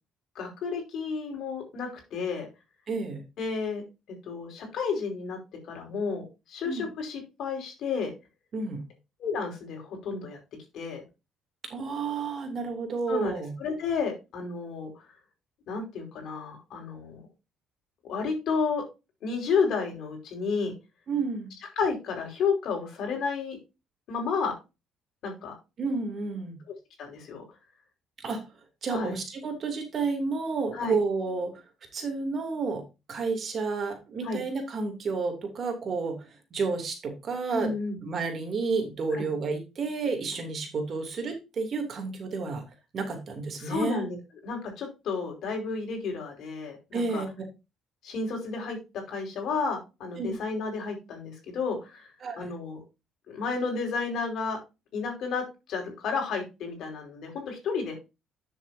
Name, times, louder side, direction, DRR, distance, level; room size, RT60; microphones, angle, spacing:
voice 1, 0.3-2.5 3.4-3.8 4.2-5.4 5.7-8.1 9.2-10.4 10.7-11.0 13.1-15.1 15.7-17.2 18.0-18.8 19.2-20.7 21.7-23.6 24.1-24.5 25.2-25.5 27.0-27.4 28.9-29.1 30.7-30.9 34.2-34.4 37.5-38.0 39.1-39.3 43.6-44.2 44.4-47.2 48.0-48.8 49.1-52.1 52.3-52.8 53.3-54.6 54.9-55.4 55.7-57.9, left 5 dB, 60° left, 2 dB, 5.0 m, -31 dB
voice 2, 2.9-3.2 6.6-6.9 8.5-8.8 11.7-13.5 21.1-21.5 25.8-26.6 28.2-28.4 28.8-31.5 31.9-32.8 33.1-37.7 38.0-42.6 42.9-44.0 46.9-47.3 50.2-50.3 52.2-52.5, right 4 dB, 40° right, 4 dB, 2.9 m, -31 dB
10.5 x 7.1 x 2.8 m, 0.26 s
cardioid pair, 140°, 0 cm